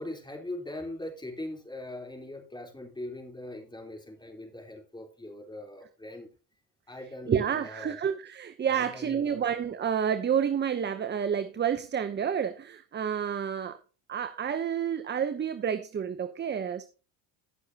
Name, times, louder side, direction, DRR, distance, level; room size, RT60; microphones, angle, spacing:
voice 1, 0.0-6.3 6.9-8.0 8.6-9.4, left 1 dB, 10° left, 3.5 m, -41 dB
voice 2, 7.3-13.8 14.1-16.8, right 8 dB, 25° right, 0.7 m, -29 dB
18.0 x 6.4 x 2.8 m
supercardioid pair, 85°, 46 cm